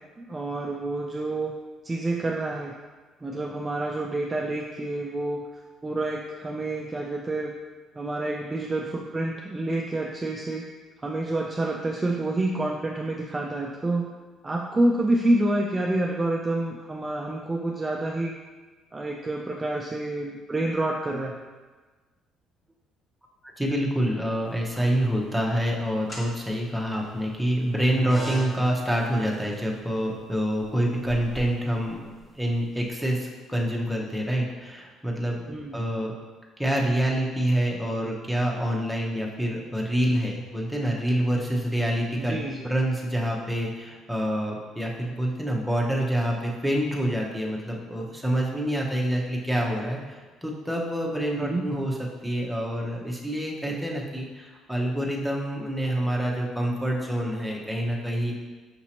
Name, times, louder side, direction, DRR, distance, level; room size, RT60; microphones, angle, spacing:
voice 1, 0.2-1.5 1.8-2.8 3.2-5.4 5.8-7.5 8.0-10.6 11.0-14.1 14.4-18.3 18.9-21.4 35.5-35.8 42.2-42.7 51.3-51.7, right 2 dB, 20° right, -1 dB, 0.3 m, -28 dB
voice 2, 23.6-35.4 35.7-36.1 36.6-42.4 42.6-51.9 52.2-58.3, equal, ahead, -2 dB, 0.8 m, -27 dB
sound 1, 24.5-25.2 25.9-32.8, right 3 dB, 25° left, 1.2 m, -40 dB
5.9 x 2.8 x 2.8 m, 1.3 s
cardioid pair, 100°, 0 cm